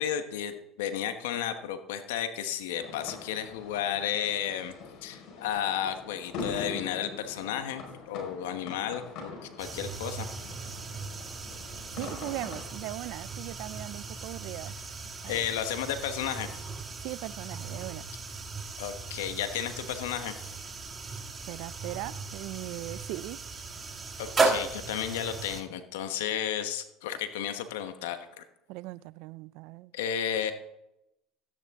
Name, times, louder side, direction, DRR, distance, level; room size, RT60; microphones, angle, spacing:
voice 1, 0.0-4.7 5.0-9.3 9.6-10.3 15.3-16.6 18.8-20.4 24.2-28.4 29.9-30.5, left 9 dB, 85° left, 8 dB, 1.2 m, -33 dB
sound 1, 2.8-12.7, left 4 dB, 60° left, 4.8 m, -43 dB
sound 2, 9.6-25.6, right 3 dB, 30° right, 1.8 m, -36 dB
voice 2, 12.0-14.7 15.2-15.4 17.0-18.0 21.5-23.4 28.7-29.9, right 18 dB, 70° right, 20 dB, 0.4 m, -39 dB
13.5 x 9.9 x 3.7 m, 0.86 s
supercardioid pair, 85°, 0 cm